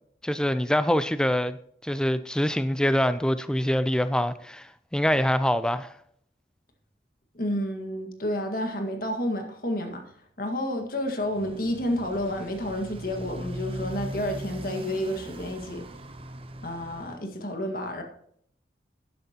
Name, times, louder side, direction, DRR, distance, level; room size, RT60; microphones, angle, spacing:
voice 1, 0.2-1.6 1.8-5.9, equal, 5° left, 0.4 m, -25 dB
voice 2, 7.3-10.0 10.4-15.8 16.6-18.0, left 1 dB, 50° left, 1.8 m, -30 dB
Motorcycle, 11.2-17.2, right 1 dB, 30° right, 0.7 m, -39 dB
12.0 x 10.5 x 2.9 m
head